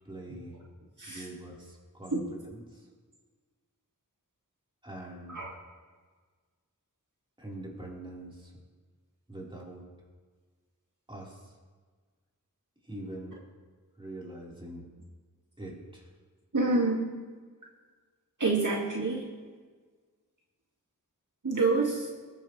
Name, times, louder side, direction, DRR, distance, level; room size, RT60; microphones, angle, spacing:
voice 1, 0.0-0.5 1.1-2.8 4.8-5.5 7.4-8.5 9.3-9.8 11.1-11.5 12.8-13.4 14.0-14.8 15.6-16.1, right 1 dB, 15° right, -4 dB, 4.3 m, -43 dB
voice 2, 16.5-17.0 18.4-19.2 21.4-22.1, right 3 dB, 60° right, -3 dB, 2.2 m, -27 dB
20.5 x 9.9 x 3.3 m, 1.5 s
wide cardioid pair, 55°, 35 cm